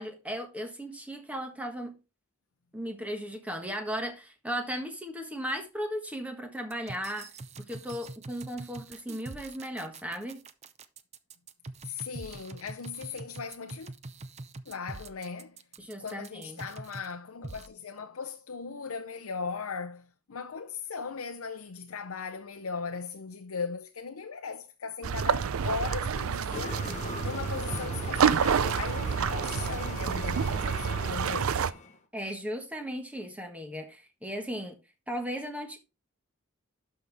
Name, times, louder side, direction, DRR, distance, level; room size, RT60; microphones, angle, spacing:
voice 1, 0.0-2.0 2.7-7.3 7.6-10.4 15.8-16.6 32.1-34.8 35.1-35.8, equal, 5° right, 1.4 m, -36 dB
sound 1, 6.7-17.1 17.4-17.7, right 3 dB, 30° right, 0.5 m, -44 dB
voice 2, 11.8-13.9 14.7-15.6 16.0-26.9 27.2-31.7, left 5 dB, 85° left, 0.6 m, -38 dB
sound 2, 25.0-31.7, right 7 dB, 80° right, 0.5 m, -28 dB
sound 3, 26.5-32.0, left 3 dB, 35° left, 1.0 m, -40 dB
12.0 x 5.6 x 3.5 m
head